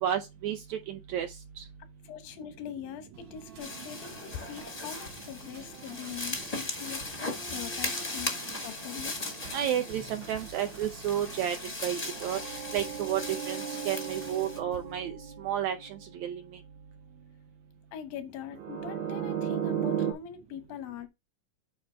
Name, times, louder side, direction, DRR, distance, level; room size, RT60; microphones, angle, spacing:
voice 1, 0.0-1.3 1.6-1.7 9.5-11.6 11.8-12.4 12.7-13.2 13.5-13.6 13.9-15.2 15.4-15.8 16.2-16.4, right 10 dB, 70° right, 1.8 m, -31 dB
voice 2, 2.0-9.2 17.9-21.1, left 9 dB, 90° left, 2.9 m, -42 dB
sound 1, 3.1-15.0, right 4 dB, 55° right, 1.3 m, -50 dB
sound 2, 3.6-14.6, left 2 dB, 40° left, 0.5 m, -38 dB
sound 3, 11.2-16.0 18.5-20.1, right 9 dB, 90° right, 3.5 m, -35 dB
8.8 x 3.1 x 5.5 m
omnidirectional pair, 3.9 m